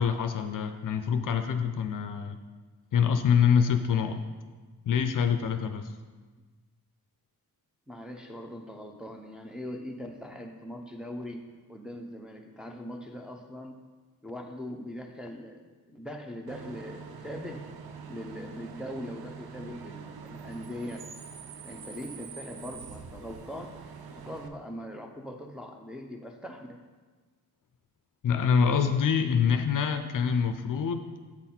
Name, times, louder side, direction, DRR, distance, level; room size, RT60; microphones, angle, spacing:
voice 1, 0.0-2.4 2.9-4.2 4.9-5.9 28.2-31.1, left 7 dB, 60° left, 8 dB, 0.5 m, -25 dB
voice 2, 7.9-11.4 11.7-13.8 14.2-17.7 18.1-21.0 21.6-23.8 24.1-26.8, left 1 dB, ahead, 2 dB, 0.6 m, -41 dB
Bus / Idling / Screech, 16.5-24.5, right 6 dB, 85° right, 0.6 m, -45 dB
8.1 x 4.0 x 4.2 m, 1.4 s
wide cardioid pair, 100°, 36 cm